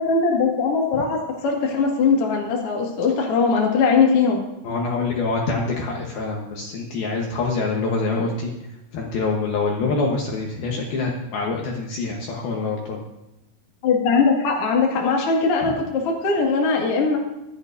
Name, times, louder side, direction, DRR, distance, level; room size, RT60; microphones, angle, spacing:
voice 1, 0.0-4.4 13.8-17.2, left 4 dB, 45° left, -1 dB, 1.9 m, -20 dB
voice 2, 4.6-8.5 8.9-13.0 15.6-15.7, left 3 dB, 65° left, -1 dB, 2.6 m, -25 dB
24.5 x 8.9 x 2.7 m, 0.97 s
omnidirectional pair, 5.5 m